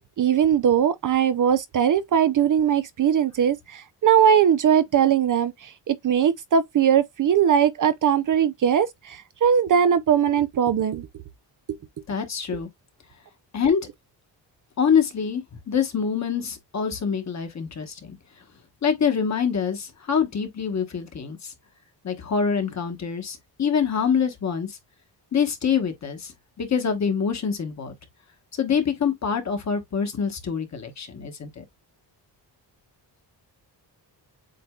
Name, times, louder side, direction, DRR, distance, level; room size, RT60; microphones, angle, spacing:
voice 1, 0.2-11.1, right 8 dB, 50° right, 0.5 m, -20 dB
voice 2, 12.1-12.7 13.5-13.8 14.8-18.2 18.8-21.5 22.0-24.8 25.3-26.3 26.6-27.9 28.6-31.6, left 6 dB, 40° left, 1.2 m, -25 dB
7.7 x 2.7 x 2.3 m
wide cardioid pair, 155°, 43 cm